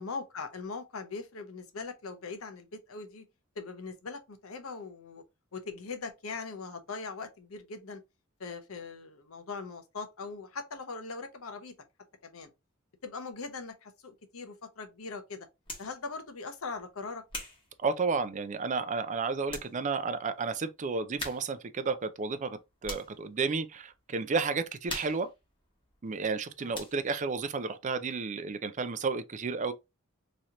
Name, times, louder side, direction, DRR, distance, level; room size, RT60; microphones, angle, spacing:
voice 1, 0.0-3.2 3.6-5.2 5.5-8.0 8.4-11.7 12.2-12.5 13.0-15.5 15.8-17.2 26.6-26.7, left 4 dB, 85° left, 0.8 m, -40 dB
sound 1, 15.6-16.0 16.6-18.6 19.1-19.2 19.5-19.8 20.1-20.2 21.2-21.7 22.0-23.2 23.7-24.0 24.3-26.4 26.7-27.2, left 2 dB, 25° left, 1.2 m, -43 dB
voice 2, 17.8-25.3 26.0-29.7, right 4 dB, 35° right, 0.4 m, -32 dB
3.1 x 2.9 x 3.7 m
head